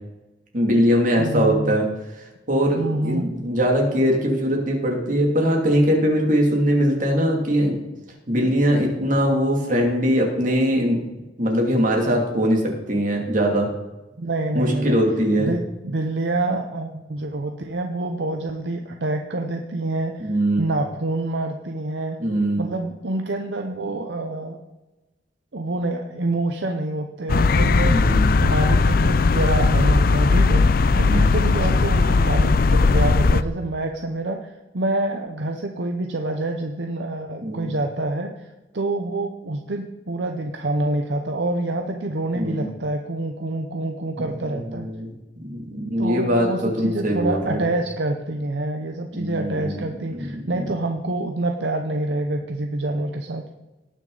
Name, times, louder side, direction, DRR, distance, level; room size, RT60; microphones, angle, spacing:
voice 1, 0.5-1.9 2.5-7.8 8.3-11.0 11.4-12.6 12.9-13.7 14.5-15.5 20.2-20.6 22.2-22.6 27.9-28.3 31.0-31.2 37.4-37.7 42.3-42.7 44.2-44.3 44.7-45.1 45.4-47.6 49.1-49.7 50.1-50.6, equal, 45° right, 0 dB, 2.6 m, -21 dB
voice 2, 1.2-1.8 2.8-3.3 14.2-15.0 15.4-20.3 20.6-22.2 22.6-24.6 25.5-38.5 38.7-44.9 46.0-53.4, right 2 dB, 70° right, 4 dB, 0.8 m, -27 dB
sound 1, 27.3-33.4, left 3 dB, 50° left, 0.4 m, -18 dB
18.5 x 6.4 x 4.0 m, 1.1 s
head